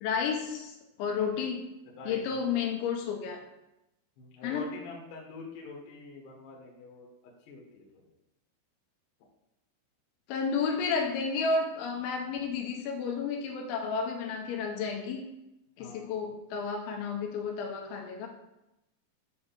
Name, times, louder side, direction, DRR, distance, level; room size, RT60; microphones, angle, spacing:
voice 1, 0.0-1.6 2.1-3.4 4.4-4.7 10.3-15.3 15.8-18.3, left 5 dB, 85° left, 2 dB, 3.0 m, -31 dB
voice 2, 2.0-2.6 4.2-8.0 15.8-16.3, left 2 dB, 70° left, -2 dB, 2.0 m, -46 dB
7.1 x 2.7 x 5.0 m, 0.89 s
omnidirectional pair, 5.5 m